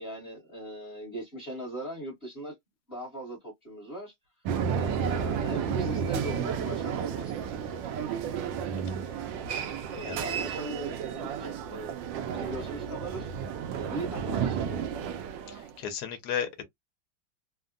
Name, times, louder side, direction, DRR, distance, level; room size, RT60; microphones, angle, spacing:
voice 1, 0.0-2.5 2.9-4.1 4.7-7.3 9.9-12.0 12.3-13.3 13.8-14.9, right 1 dB, 35° left, 1.1 m, -39 dB
sound 1, 4.5-15.7, right 7 dB, 75° right, 1.1 m, -32 dB
voice 2, 15.5-16.6, left 8 dB, 60° left, 1.2 m, -34 dB
3.5 x 2.1 x 2.4 m
omnidirectional pair, 2.3 m